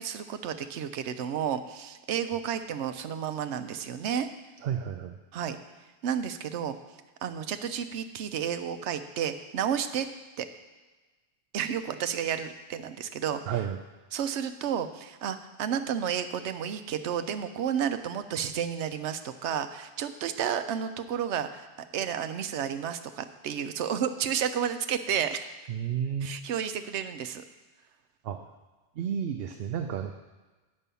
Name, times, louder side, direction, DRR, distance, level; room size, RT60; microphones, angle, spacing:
voice 1, 0.0-4.3 5.3-5.6 6.0-6.8 7.2-10.1 10.4-10.5 11.5-13.6 14.1-21.7 21.9-25.5 26.2-27.4, right 8 dB, 90° right, 10 dB, 0.9 m, -31 dB
voice 2, 4.6-5.2 13.5-13.8 25.7-26.3 28.2-28.5 29.0-30.1, right 8 dB, 65° right, 6 dB, 0.7 m, -31 dB
9.0 x 5.4 x 6.9 m, 1.2 s
omnidirectional pair, 1.1 m